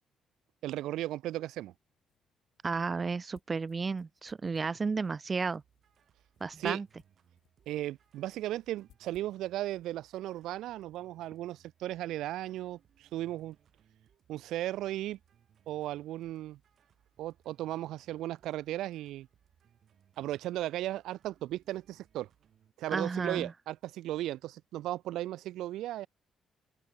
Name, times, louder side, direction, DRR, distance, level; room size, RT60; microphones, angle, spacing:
voice 1, 0.6-1.7 6.6-6.8 7.7-13.6 14.3-15.2 15.7-16.6 17.2-19.3 20.2-22.3 22.8-26.1, right 14 dB, 85° right, 0.7 m, -36 dB
sound 1, 1.7-11.5, left 13 dB, 80° left, 5.2 m, -71 dB
voice 2, 2.6-5.6 6.4-6.9 22.9-23.5, right 4 dB, 35° right, 0.7 m, -33 dB
sound 2, 5.4-22.7, right 9 dB, 60° right, 4.9 m, -68 dB
open air
cardioid pair, 90°, 0 cm